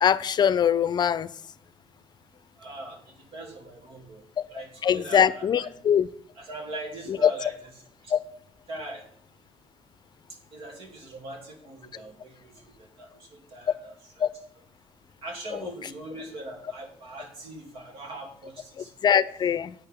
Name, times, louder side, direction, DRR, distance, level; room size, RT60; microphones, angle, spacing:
voice 1, 0.0-1.3 4.4-4.5 4.8-6.1 7.1-7.3 8.1-8.2 14.2-14.3 15.5-15.6 18.8-19.7, left 8 dB, 45° left, 0.5 m, -22 dB
voice 2, 2.6-4.2 4.5-5.7 6.4-7.5 8.0-8.1 8.7-9.0 10.5-13.9 15.2-18.9, right 2 dB, 70° right, 2.7 m, -41 dB
10.5 x 8.9 x 3.5 m
cardioid pair, 95°, 10 cm